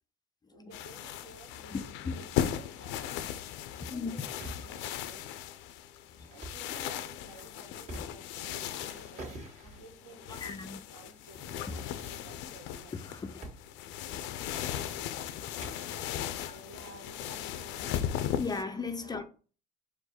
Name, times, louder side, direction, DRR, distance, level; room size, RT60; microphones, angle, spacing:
voice 1, 0.5-3.2 3.8-5.2 6.3-13.3 16.5-19.2, right 3 dB, 65° right, 2.0 m, -53 dB
sound 1, 0.7-18.6, left 10 dB, 80° left, 0.5 m, -38 dB
voice 2, 1.7-2.1 3.8-4.3 6.2-6.3 10.4-10.8 11.7-11.8 13.0-13.4 14.1-14.6 15.1-16.1 16.5-16.6 18.4-19.2, left 4 dB, 20° left, 0.4 m, -38 dB
sound 2, 4.2-4.8 6.3-6.7 7.2-8.4 8.7-10.0 10.7-11.3 11.6-12.6 13.4-13.7 13.9-14.0 14.4-15.9, right 1 dB, 40° right, 1.7 m, -47 dB
4.4 x 2.5 x 4.3 m
cardioid pair, 115°, 19 cm